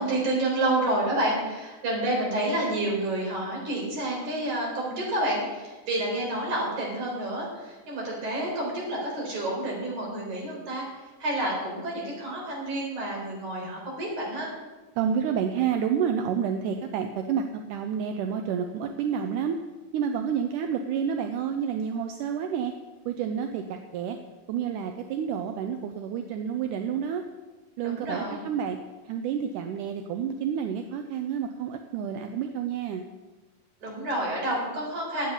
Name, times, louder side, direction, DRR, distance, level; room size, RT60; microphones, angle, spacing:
voice 1, 0.0-14.5 27.8-28.4 33.8-35.3, right 1 dB, 55° right, -2 dB, 5.5 m, -29 dB
voice 2, 15.0-19.6 19.9-22.7 23.1-24.2 24.5-27.2 27.8-28.8 29.1-33.0, right 7 dB, 75° right, 6 dB, 2.0 m, -29 dB
10.0 x 8.4 x 9.5 m, 1.2 s
omnidirectional pair, 4.1 m